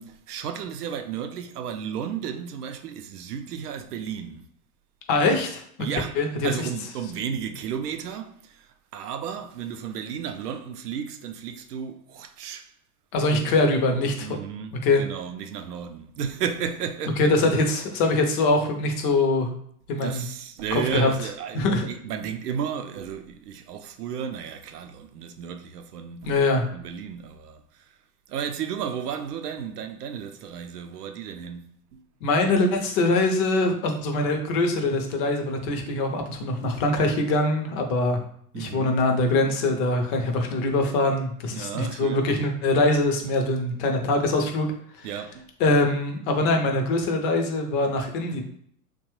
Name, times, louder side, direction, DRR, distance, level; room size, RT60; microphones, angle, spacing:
voice 1, 0.0-4.5 5.8-6.1 6.4-12.7 14.2-17.5 20.0-26.4 26.7-27.8 28.3-32.0 38.5-39.0 41.5-42.3 45.0-45.5, right 7 dB, 75° right, 0.6 m, -33 dB
voice 2, 5.1-5.6 6.2-6.3 13.1-14.3 14.8-15.0 17.2-19.5 19.9-20.2 20.7-21.1 21.5-21.9 26.2-26.6 32.2-38.2 38.5-44.7 45.0-45.1 45.6-48.4, left 2 dB, 35° left, 0.5 m, -23 dB
2.8 x 2.2 x 3.0 m
hypercardioid pair, 105°, 47 cm